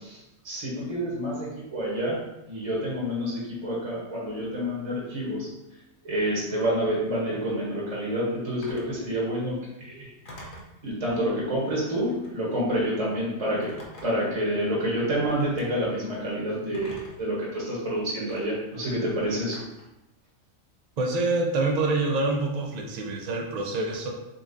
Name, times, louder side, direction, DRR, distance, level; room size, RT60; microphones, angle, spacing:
voice 1, 0.0-5.5 6.0-10.1 10.8-13.7 14.0-19.6, equal, 30° right, -5 dB, 0.9 m, -28 dB
Telephone, 8.6-8.9 10.2-10.8 12.0-12.4 13.6-14.3 15.3-15.7 16.7-17.3 18.3-18.4 19.5-19.9, equal, 45° left, 0.8 m, -44 dB
voice 2, 21.0-24.1, right 2 dB, 80° right, 0 dB, 0.3 m, -26 dB
4.0 x 3.5 x 2.6 m, 0.95 s
omnidirectional pair, 1.4 m